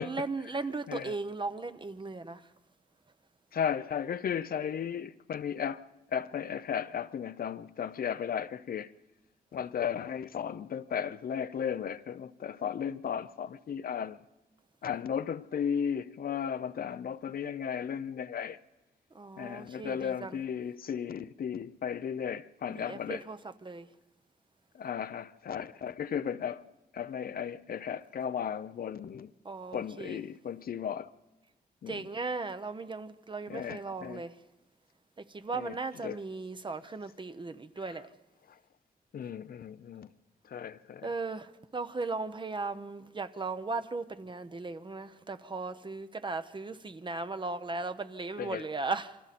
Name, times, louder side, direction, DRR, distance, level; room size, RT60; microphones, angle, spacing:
voice 1, 0.0-2.5 19.1-20.3 22.7-23.9 29.4-30.2 31.9-34.4 35.2-38.1 41.0-49.2, right 3 dB, 30° right, 0.9 m, -37 dB
voice 2, 3.5-8.9 9.5-14.2 14.8-18.6 19.4-23.2 24.7-29.3 29.7-31.1 31.8-32.0 33.5-34.2 35.5-35.8 36.0-36.2 37.8-38.0 38.5-38.6 39.1-40.1 40.4-41.1 48.4-48.7, left 8 dB, 65° left, 0.7 m, -35 dB
28.0 x 24.0 x 4.3 m
cardioid pair, 85°, 16 cm